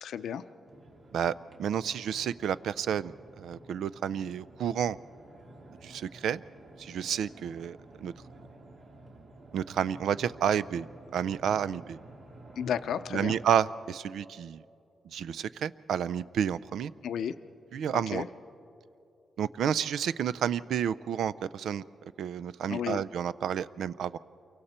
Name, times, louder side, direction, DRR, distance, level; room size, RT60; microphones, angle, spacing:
voice 1, 0.0-0.4 12.6-13.4 17.0-17.3 17.9-18.3 22.7-23.0, left 8 dB, 85° left, 11 dB, 0.6 m, -33 dB
sound 1, 0.6-13.5, right 2 dB, 65° right, 2.6 m, -52 dB
voice 2, 1.6-5.0 5.8-6.4 6.8-8.1 9.5-10.9 11.1-12.0 13.1-14.6 15.1-16.9 17.7-18.2 19.4-21.8 22.2-24.2, right 8 dB, 90° right, 17 dB, 0.4 m, -30 dB
28.0 x 23.5 x 4.3 m, 2.7 s
wide cardioid pair, 130°, 0 cm